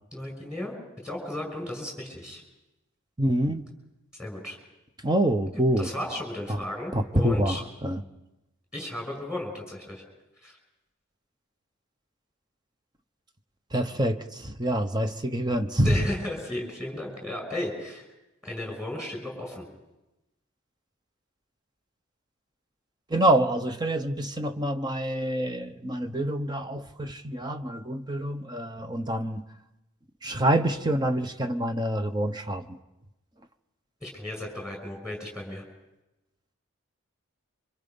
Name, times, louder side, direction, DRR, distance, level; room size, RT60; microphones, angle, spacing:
voice 1, 0.1-0.7 1.0-2.4 4.2-4.6 5.5-7.6 8.7-10.0 10.4-10.5 15.8-18.1 18.4-19.7 34.0-35.6, left 1 dB, 5° right, 1 dB, 6.4 m, -35 dB
voice 2, 3.2-3.6 5.0-5.9 6.9-8.0 13.7-15.9 23.1-29.4 30.2-32.8, right 1 dB, 20° right, 7 dB, 1.0 m, -26 dB
28.5 x 25.5 x 5.4 m, 0.97 s
head